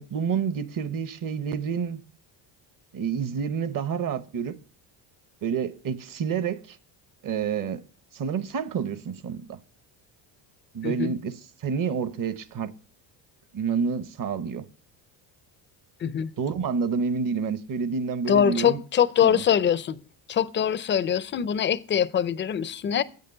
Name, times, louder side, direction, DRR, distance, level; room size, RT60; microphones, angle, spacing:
voice 1, 0.0-2.0 2.9-4.6 5.4-6.8 7.2-7.8 8.1-9.6 10.7-12.7 13.5-14.6 16.4-18.8 19.2-19.4, right 6 dB, 40° right, 0.9 m, -29 dB
voice 2, 10.8-11.1 16.0-16.3 18.3-20.0 20.3-23.0, left 8 dB, 25° left, 0.5 m, -23 dB
8.3 x 6.8 x 6.6 m
supercardioid pair, 95°, 49 cm